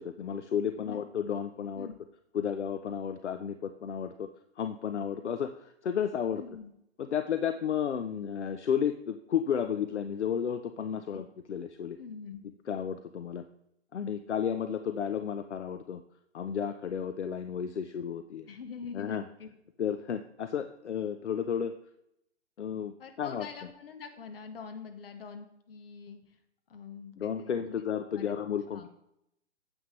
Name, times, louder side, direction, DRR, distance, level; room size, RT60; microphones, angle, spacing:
voice 1, 0.0-1.9 2.3-4.3 4.6-6.4 7.0-12.0 12.7-13.5 13.9-16.0 16.3-18.5 18.9-19.2 19.8-21.7 22.6-23.5 27.2-28.9, left 8 dB, 75° left, 10 dB, 0.6 m, -32 dB
voice 2, 6.4-6.7 11.1-11.2 12.0-12.5 18.5-19.5 23.0-26.4 26.7-27.8 28.1-28.4 28.7-28.9, left 6 dB, 50° left, 6 dB, 1.4 m, -44 dB
9.5 x 7.9 x 3.1 m, 0.79 s
figure-of-eight pair, 130°, 35 cm